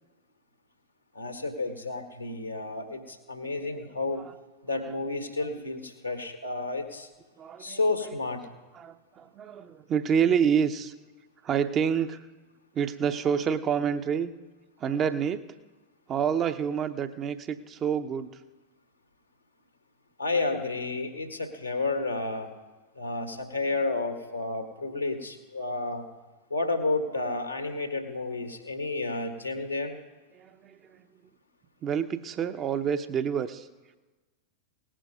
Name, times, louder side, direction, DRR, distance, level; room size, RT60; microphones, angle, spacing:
voice 1, 1.1-4.2 4.6-7.1 7.6-8.4 20.2-22.5 22.9-26.0 26.5-29.9, left 3 dB, 85° left, 6 dB, 1.7 m, -31 dB
voice 2, 3.6-4.4 4.7-5.0 5.4-5.5 7.4-8.2 8.7-10.9 11.4-12.3 12.7-14.3 14.8-15.4 16.1-18.3 30.6-31.0 31.8-33.7, right 7 dB, 30° right, 9 dB, 0.7 m, -28 dB
18.0 x 10.0 x 5.2 m, 1.2 s
figure-of-eight pair, 90°, 0 cm